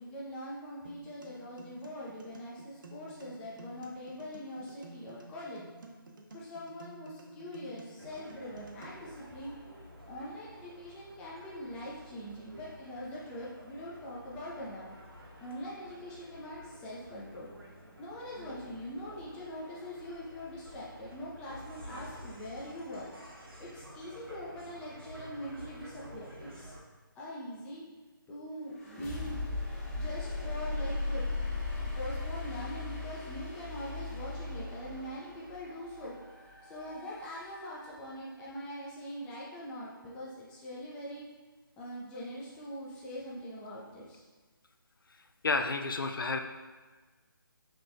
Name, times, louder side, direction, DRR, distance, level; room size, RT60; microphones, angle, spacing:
voice 1, 0.0-5.6 6.3-9.5 10.1-14.9 15.4-17.5 18.0-23.1 23.6-26.7 27.2-27.8 28.3-29.4 29.9-31.3 32.0-36.1 36.6-41.2 41.8-44.2, equal, 5° left, -6 dB, 0.4 m, -43 dB
sound 1, 0.9-8.9, right 2 dB, 60° right, 0.7 m, -51 dB
sound 2, 8.0-26.8, equal, 85° right, 1.0 m, -51 dB
sound 3, 28.7-38.5, left 2 dB, 35° left, 1.5 m, -38 dB
voice 2, 45.4-46.4, left 3 dB, 65° left, 6 dB, 0.4 m, -30 dB
5.8 x 3.2 x 2.5 m, 1.3 s
figure-of-eight pair, 150°, 12 cm